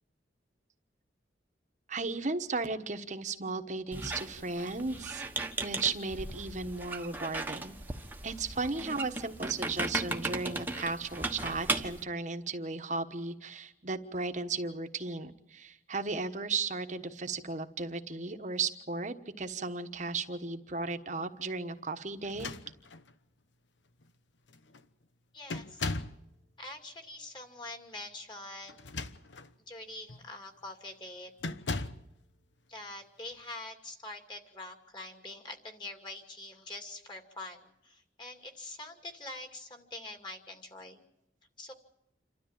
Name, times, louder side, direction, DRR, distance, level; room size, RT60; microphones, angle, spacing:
voice 1, 1.9-5.2 5.6-7.8 8.2-22.5, right 3 dB, 40° right, 8 dB, 1.3 m, -35 dB
Squeak, 3.9-12.0, right 2 dB, 10° right, 1.2 m, -37 dB
sound 1, 22.2-23.1 24.0-24.1 24.5-24.8 25.5-26.2 28.7-29.5 30.1-30.3 31.4-32.1, left 3 dB, 85° left, 1.0 m, -38 dB
voice 2, 25.3-25.9 26.6-29.0 29.7-31.3 32.7-41.0 41.6-41.7, left 2 dB, 25° left, 5 dB, 2.5 m, -45 dB
28.0 x 13.0 x 8.9 m, 0.84 s
head